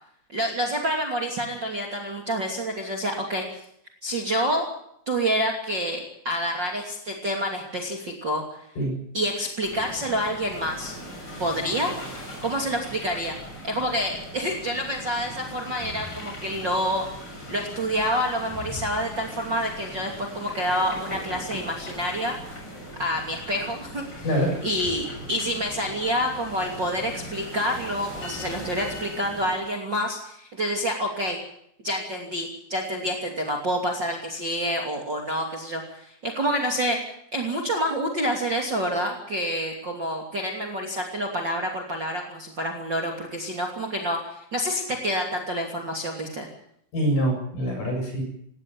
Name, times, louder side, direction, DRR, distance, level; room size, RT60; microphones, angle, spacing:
voice 1, 0.3-3.4 4.0-4.7 5.1-8.7 9.1-11.0 11.4-12.0 12.4-13.4 13.6-17.1 17.5-22.4 23.0-24.2 24.6-31.4 31.8-37.0 37.3-46.5, equal, 30° right, 1 dB, 2.9 m, -28 dB
sound 1, 9.6-29.6, equal, 25° left, 7.7 m, -40 dB
voice 2, 46.9-48.2, equal, 50° left, 2 dB, 8.9 m, -24 dB
18.5 x 18.0 x 8.8 m, 0.71 s
omnidirectional pair, 4.8 m